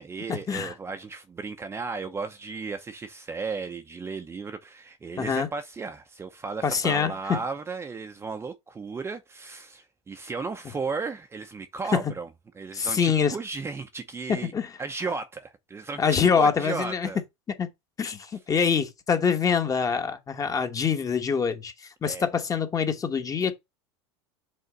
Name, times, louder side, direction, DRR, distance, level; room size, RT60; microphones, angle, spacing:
voice 1, 0.0-12.3 12.6-14.5 14.8-17.2 22.0-22.3, right 4 dB, 15° right, 0.7 m, -35 dB
voice 2, 5.2-5.5 6.6-7.4 12.7-13.4 14.4-14.7 16.0-17.1 17.6-17.7 18.0-21.7 22.0-23.5, left 6 dB, 20° left, 1.2 m, -25 dB
5.4 x 3.5 x 5.2 m
supercardioid pair, 115°, 15 cm